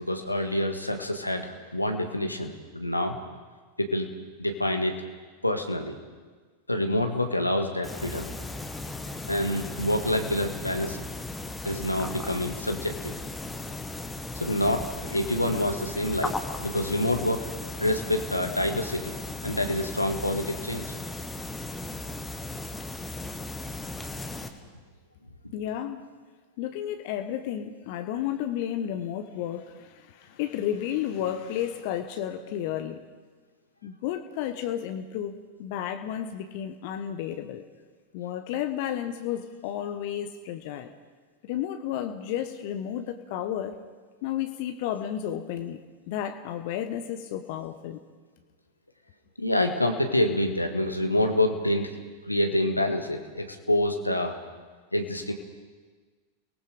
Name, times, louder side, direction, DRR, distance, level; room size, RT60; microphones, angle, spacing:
voice 1, 0.0-3.2 3.8-4.1 4.4-5.0 5.4-6.0 6.7-8.3 9.3-11.0 11.6-13.1 14.3-17.5 17.8-19.1 19.4-20.8 49.4-51.9 52.3-54.4 54.9-55.3, left 1 dB, 85° left, 5 dB, 1.8 m, -27 dB
sound 1, 7.8-24.5, left 2 dB, 10° left, 1.6 m, -36 dB
voice 2, 25.5-26.1 26.6-33.0 33.8-37.6 38.1-40.9 41.4-43.7 44.2-45.8 46.1-48.0, left 10 dB, 50° left, 8 dB, 1.1 m, -32 dB
29.5 x 19.0 x 5.1 m, 1.4 s
figure-of-eight pair, 90°, 0 cm